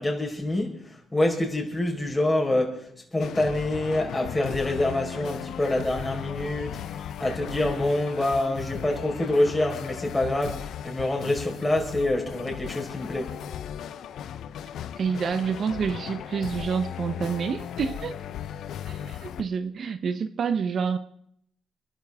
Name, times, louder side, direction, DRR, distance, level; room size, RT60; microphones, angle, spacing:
voice 1, 0.0-13.4, left 1 dB, 15° left, 4.6 m, -26 dB
sound 1, 3.2-19.4, left 9 dB, 75° left, 0.8 m, -36 dB
voice 2, 15.0-18.1 18.9-21.0, right 6 dB, 55° right, 0.9 m, -28 dB
27.5 x 12.0 x 3.7 m
cardioid pair, 90°, 0 cm